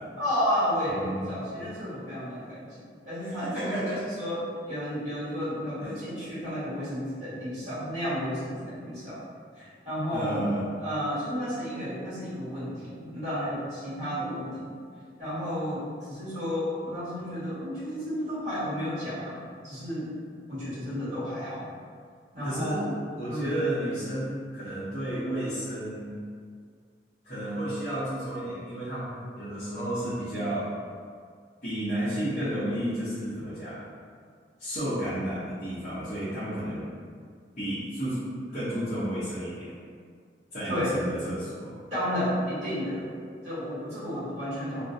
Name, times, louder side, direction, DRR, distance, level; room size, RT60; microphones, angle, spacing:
voice 1, 0.2-9.2 9.5-10.4 10.8-14.7 15.2-20.1 20.5-21.7 22.3-22.9 23.3-23.5 40.6-41.0 41.9-43.1 43.4-44.8, equal, 40° right, -12 dB, 1.2 m, -32 dB
voice 2, 3.2-4.0 5.8-5.9 10.1-10.6 22.4-22.9 23.2-26.2 27.2-30.7 31.6-33.8 34.6-36.9 37.6-38.2 38.5-39.7 40.5-41.7, right 1 dB, 40° left, -14 dB, 0.7 m, -32 dB
2.3 x 2.1 x 2.6 m, 2.1 s
head